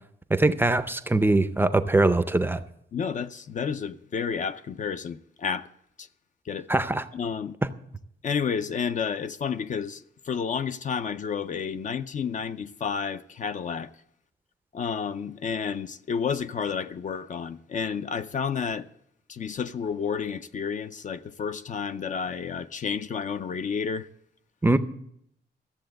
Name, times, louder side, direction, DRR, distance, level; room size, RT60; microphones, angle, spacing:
voice 1, 0.3-2.6 6.7-7.0 24.6-24.8, right 2 dB, 10° right, 0.5 m, -22 dB
voice 2, 2.9-5.7 6.0-6.1 6.5-6.7 7.1-7.5 8.2-13.9 14.7-18.9 19.3-24.1, left 6 dB, 45° left, 0.5 m, -31 dB
14.0 x 7.6 x 7.7 m
wide cardioid pair, 170°, 19 cm